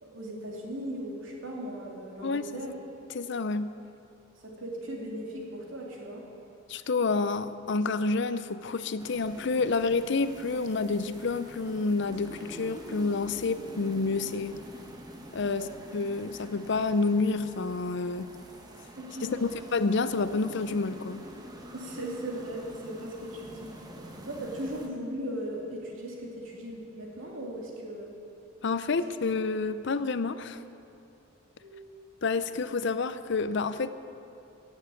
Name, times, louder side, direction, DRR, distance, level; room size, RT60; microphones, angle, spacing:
voice 1, 0.0-2.7 4.4-6.2 15.5-15.7 18.9-19.5 21.7-23.7 24.2-28.1 31.6-31.8, right 1 dB, 90° right, -2 dB, 2.9 m, -38 dB
voice 2, 2.2-2.6 3.1-3.7 6.7-14.6 15.3-15.7 15.9-18.3 19.2-21.2 28.6-30.6 32.2-33.9, left 4 dB, 60° left, 13 dB, 0.6 m, -29 dB
sound 1, 9.0-24.9, equal, 20° right, 1.2 m, -46 dB
16.5 x 7.3 x 8.9 m, 2.7 s
head